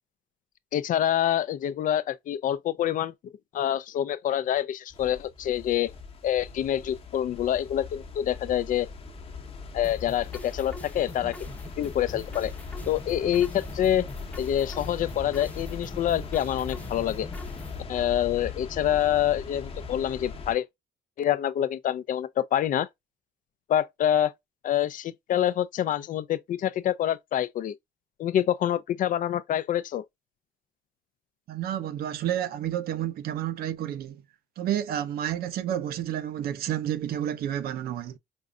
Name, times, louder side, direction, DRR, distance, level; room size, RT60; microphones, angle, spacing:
voice 1, 0.7-3.1 3.5-5.9 6.2-8.9 9.7-11.3 11.8-12.5 12.9-14.0 14.4-17.3 17.9-20.7 21.2-22.9 23.7-24.3 24.6-27.7 28.2-30.0, left 11 dB, 50° left, 0.5 m, -26 dB
sound 1, 4.9-20.5, left 4 dB, 35° left, 0.9 m, -39 dB
sound 2, 9.8-17.8, left 2 dB, 10° left, 0.6 m, -45 dB
voice 2, 31.5-34.2 34.6-38.2, right 11 dB, 65° right, 0.7 m, -30 dB
5.3 x 2.4 x 2.3 m
cardioid pair, 110°, 17 cm